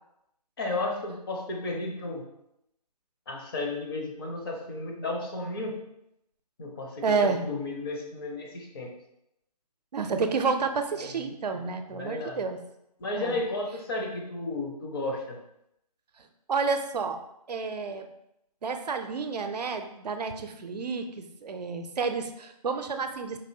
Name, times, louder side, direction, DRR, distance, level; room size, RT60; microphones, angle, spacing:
voice 1, 0.6-2.3 3.3-5.8 6.6-8.9 11.0-11.1 11.4-11.6 11.9-12.4 13.0-15.4, left 2 dB, 35° left, 0 dB, 0.6 m, -33 dB
voice 2, 7.0-7.4 9.9-12.6 13.2-13.4 16.5-17.2 17.5-18.1 18.6-23.4, right 4 dB, 75° right, 6 dB, 0.5 m, -30 dB
4.2 x 2.6 x 2.7 m, 0.81 s
figure-of-eight pair, 150°, 21 cm